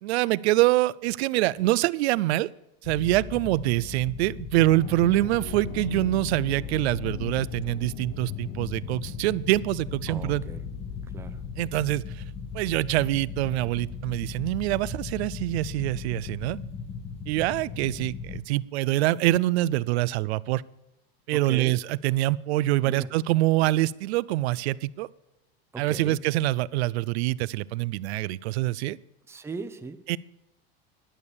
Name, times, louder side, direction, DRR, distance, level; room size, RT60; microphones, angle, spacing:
voice 1, 0.0-2.5 2.8-10.4 11.6-12.0 12.5-16.6 17.3-20.6 21.3-25.1 25.8-29.0 30.1-30.2, right 17 dB, 75° right, 21 dB, 0.5 m, -25 dB
sound 1, 2.8-18.4, left 5 dB, 20° left, 0.9 m, -38 dB
sound 2, 4.6-11.6, left 10 dB, 65° left, 0.9 m, -40 dB
voice 2, 10.1-10.6 11.0-11.4 21.5-21.8 22.8-23.1 25.7-26.2 29.3-30.0, right 4 dB, 10° right, 10 dB, 0.6 m, -38 dB
11.0 x 6.5 x 7.0 m, 0.90 s
supercardioid pair, 125°, 32 cm